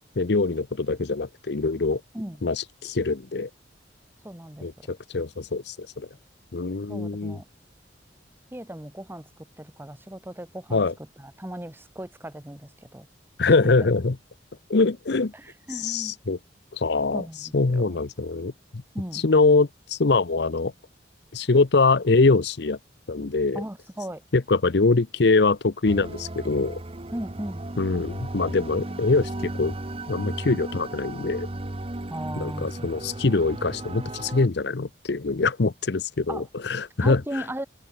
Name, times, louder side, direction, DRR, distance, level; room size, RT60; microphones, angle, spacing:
voice 1, 0.2-2.0 2.4-2.6 2.8-3.5 4.6-6.1 6.5-7.4 10.7-10.9 13.4-14.2 14.7-15.3 15.8-16.4 16.7-17.2 17.5-18.8 19.2-20.7 21.3-22.8 23.1-23.6 24.3-26.8 27.8-29.7 30.1-31.5 32.4-37.4, left 3 dB, 65° left, 0.8 m, -23 dB
voice 2, 2.1-2.4 4.2-4.9 6.9-7.5 8.5-10.8 11.2-13.1 13.6-13.9 15.3-16.2 17.1-18.0 18.9-19.2 23.5-24.2 27.1-27.6 32.1-32.7 36.3-36.5 37.0-37.7, right 1 dB, 10° right, 1.4 m, -37 dB
sound 1, 25.8-34.5, right 1 dB, 30° right, 1.2 m, -35 dB
open air
head